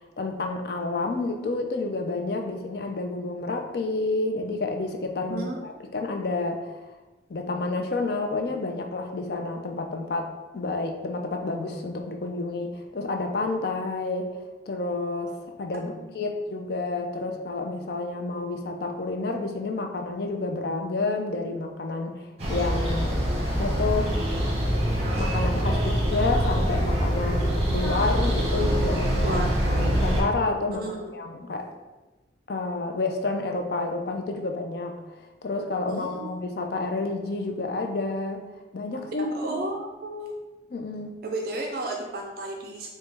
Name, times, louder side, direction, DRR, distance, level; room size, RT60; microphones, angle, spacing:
voice 1, 0.2-6.7 7.3-23.2 23.5-24.1 25.2-29.4 29.7-30.8 31.1-31.7 32.5-34.9 35.4-38.4 38.7-39.7 40.7-41.1, left 3 dB, 55° left, 4 dB, 0.4 m, -29 dB
voice 2, 15.7-16.1 29.2-29.5 30.7-31.3 35.9-36.3 39.1-40.3 41.2-42.9, right 2 dB, 50° right, 1 dB, 0.4 m, -33 dB
sound 1, 22.4-30.2, equal, 35° right, 1.0 m, -24 dB
5.1 x 2.2 x 3.3 m, 1.1 s
head